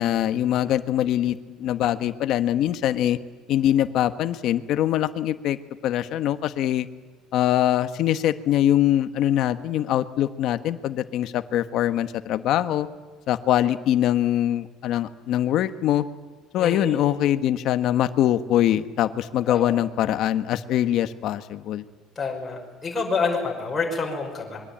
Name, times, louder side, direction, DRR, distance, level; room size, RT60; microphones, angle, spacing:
voice 1, 0.0-3.2 3.5-5.6 5.8-6.9 7.3-12.9 13.3-16.0 16.5-21.8, left 12 dB, 45° left, 10 dB, 1.2 m, -23 dB
voice 2, 16.6-16.9 19.5-19.7 22.2-24.6, left 4 dB, 10° left, -2 dB, 5.5 m, -28 dB
26.0 x 22.5 x 8.7 m, 1.4 s
cardioid pair, 175°, 0 cm